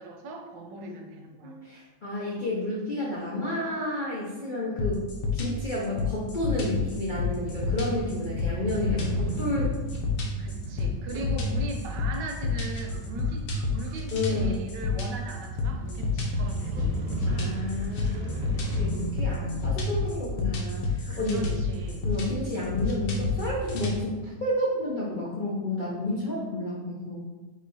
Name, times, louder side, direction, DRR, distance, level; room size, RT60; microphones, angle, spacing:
voice 1, 0.0-1.5 10.4-17.3 21.1-22.1, right 2 dB, 85° right, 3 dB, 1.3 m, -39 dB
voice 2, 1.4-5.1 5.3-9.7 11.1-11.2 14.1-14.6 17.3-21.5 22.0-27.2, left 1 dB, 65° left, -6 dB, 0.4 m, -31 dB
sound 1, 4.8-24.0, left 4 dB, 90° left, 1.4 m, -29 dB
Crow / Motorcycle, 6.2-24.1, right 2 dB, 70° right, 1.1 m, -38 dB
3.7 x 3.1 x 4.0 m, 1.2 s
omnidirectional pair, 1.9 m